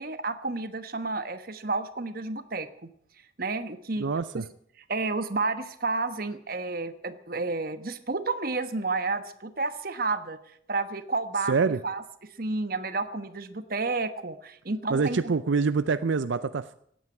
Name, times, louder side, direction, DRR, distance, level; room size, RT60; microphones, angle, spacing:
voice 1, 0.0-2.9 3.4-4.1 4.3-4.4 4.9-10.4 10.7-11.5 11.8-12.0 12.4-15.3, right 3 dB, 50° right, 10 dB, 1.2 m, -31 dB
voice 2, 4.0-4.4 11.5-11.8 14.9-16.7, right 4 dB, 80° right, 13 dB, 0.5 m, -25 dB
16.5 x 9.2 x 9.4 m, 0.68 s
head